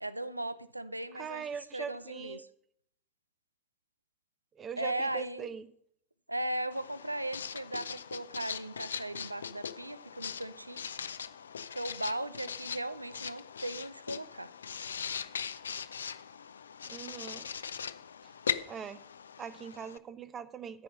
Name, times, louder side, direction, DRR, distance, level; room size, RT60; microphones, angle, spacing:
voice 1, 0.0-1.4 1.7-2.5 4.8-5.5 6.3-10.8 11.7-14.5, right 1 dB, 90° right, 18 dB, 0.4 m, -37 dB
voice 2, 1.1-2.4 4.6-5.7 16.9-17.5 18.7-19.0 19.4-20.8, right 7 dB, 30° right, 15 dB, 0.9 m, -41 dB
Writing, 6.7-20.0, left 7 dB, 75° left, 0.4 m, -40 dB
13.5 x 5.5 x 7.1 m, 0.66 s
figure-of-eight pair, 75°, 0 cm